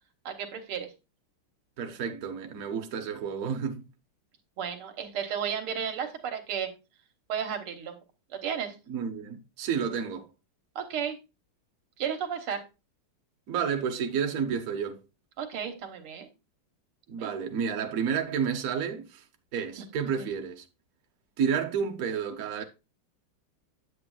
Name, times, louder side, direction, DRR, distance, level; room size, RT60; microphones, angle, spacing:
voice 1, 0.3-0.9 4.6-6.7 7.3-8.0 8.3-8.8 10.8-11.2 12.0-12.6 15.4-16.3 17.2-17.3 20.2-20.3, right 8 dB, 90° right, 2.1 m, -33 dB
voice 2, 1.8-3.8 8.9-10.3 13.5-15.0 17.1-19.2 19.5-20.6 21.4-22.6, right 7 dB, 50° right, 1.2 m, -30 dB
8.6 x 8.0 x 2.4 m
omnidirectional pair, 2.4 m